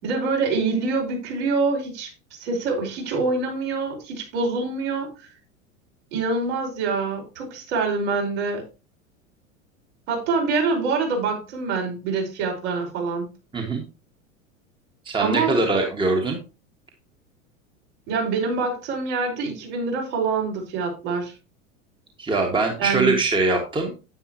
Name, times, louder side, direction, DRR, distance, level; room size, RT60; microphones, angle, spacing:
voice 1, 0.0-2.1 2.4-5.1 6.1-8.6 10.1-13.3 15.2-15.8 18.1-21.3 22.8-23.1, right 4 dB, 55° right, 0 dB, 5.1 m, -25 dB
voice 2, 13.5-13.8 15.1-16.4 22.2-24.0, right 2 dB, 10° right, 2 dB, 1.8 m, -22 dB
9.8 x 9.3 x 3.0 m, 0.31 s
figure-of-eight pair, 85°, 41 cm